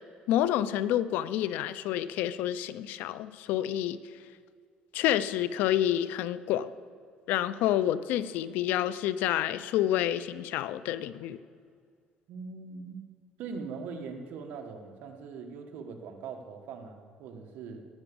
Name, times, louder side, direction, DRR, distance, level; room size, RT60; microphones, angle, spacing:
voice 1, 0.3-4.0 4.9-6.7 7.3-11.4, left 12 dB, 80° left, 15 dB, 0.5 m, -28 dB
voice 2, 12.3-17.8, right 5 dB, 75° right, 5 dB, 1.4 m, -41 dB
18.0 x 6.1 x 7.0 m, 2.1 s
cardioid pair, 135°, 3 cm